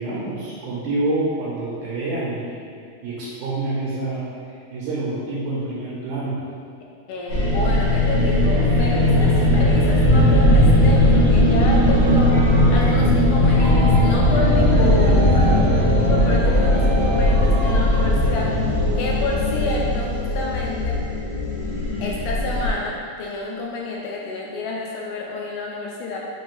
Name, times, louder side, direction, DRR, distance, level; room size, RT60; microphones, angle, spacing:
voice 1, 0.0-2.6 3.0-4.2 4.7-6.4, right 2 dB, 75° right, -7 dB, 1.8 m, -27 dB
voice 2, 7.1-12.3 12.7-18.5 19.0-21.0 22.0-26.2, left 2 dB, 80° left, -2 dB, 1.9 m, -29 dB
sound 1, 7.3-22.7, left 1 dB, 65° left, 1.7 m, -18 dB
sound 2, 12.0-19.3, right 2 dB, 40° right, 0.9 m, -35 dB
5.9 x 2.7 x 3.0 m, 2.4 s
omnidirectional pair, 3.8 m